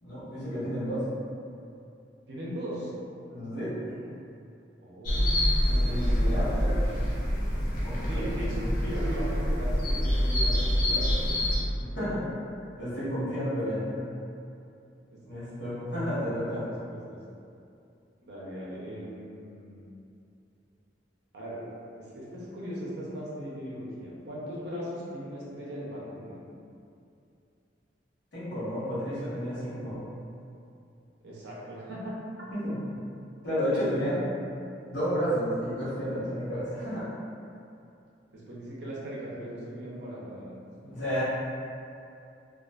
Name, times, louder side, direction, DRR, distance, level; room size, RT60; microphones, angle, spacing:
voice 1, 0.0-1.0 3.3-3.9 5.7-6.8 7.8-8.7 11.9-12.2 12.8-14.0 15.2-16.7 28.3-30.0 32.5-32.8 33.4-34.2 34.9-37.0 40.9-41.2, equal, 75° left, -11 dB, 1.0 m, -31 dB
voice 2, 2.3-2.9 4.8-5.3 6.1-6.3 7.9-11.4 12.0-12.1 15.1-15.2 16.5-17.2 18.2-19.8 21.3-21.6 22.0-26.4 31.2-32.1 33.7-34.2 38.3-40.6 40.8-40.9, equal, 65° right, -7 dB, 0.6 m, -38 dB
sound 1, 5.0-11.6, equal, 45° left, 0.5 m, -26 dB
2.4 x 2.3 x 2.2 m, 2.6 s
head